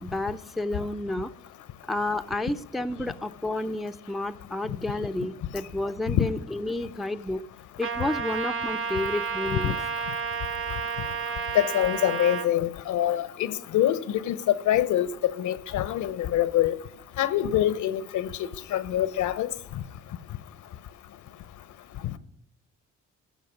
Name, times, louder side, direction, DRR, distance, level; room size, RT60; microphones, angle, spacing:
voice 1, 0.0-1.3 1.9-7.4 7.8-9.8, left 2 dB, ahead, 0.4 m, -31 dB
Trumpet, 7.8-12.5, right 6 dB, 45° right, 1.0 m, -31 dB
voice 2, 11.5-15.1 15.4-16.7 17.2-18.3 18.7-19.5, left 12 dB, 75° left, 0.7 m, -25 dB
14.5 x 6.3 x 6.0 m
cardioid pair, 90°, 30 cm